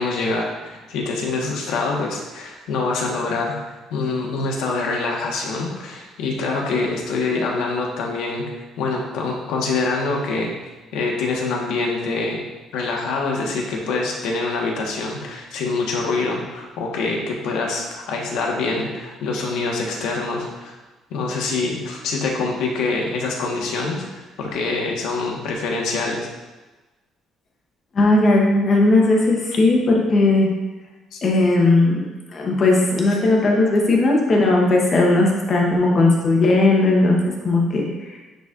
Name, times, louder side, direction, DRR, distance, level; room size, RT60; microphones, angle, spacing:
voice 1, 0.0-3.6 3.9-8.5 8.8-10.5 10.9-12.4 12.7-20.7 21.1-26.3 31.1-31.2, left 3 dB, 85° left, 0 dB, 1.2 m, -25 dB
voice 2, 27.9-30.5 31.2-38.2, left 2 dB, 30° left, -1 dB, 0.9 m, -17 dB
10.5 x 4.1 x 2.4 m, 1.2 s
cardioid pair, 180°, 0 cm